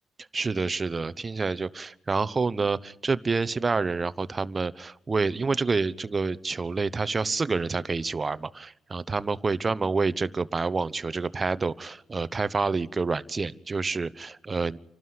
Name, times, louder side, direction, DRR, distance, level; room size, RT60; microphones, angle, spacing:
voice 1, 0.3-14.8, right 4 dB, 30° right, 1.0 m, -28 dB
29.0 x 12.5 x 9.6 m
cardioid pair, 90°, 0 cm